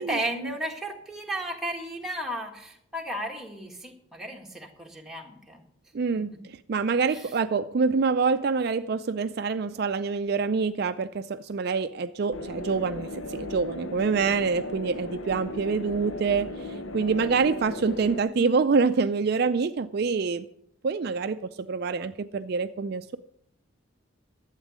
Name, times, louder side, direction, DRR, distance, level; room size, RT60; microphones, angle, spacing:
voice 1, 0.0-5.6 6.1-6.4 7.1-7.3, right 1 dB, ahead, 0 dB, 1.6 m, -34 dB
voice 2, 5.9-16.5 16.9-20.4 20.8-23.2, right 5 dB, 50° right, 10 dB, 0.4 m, -26 dB
sound 1, 12.3-18.2, left 2 dB, 75° left, 0.7 m, -36 dB
12.5 x 8.2 x 6.2 m, 0.74 s
head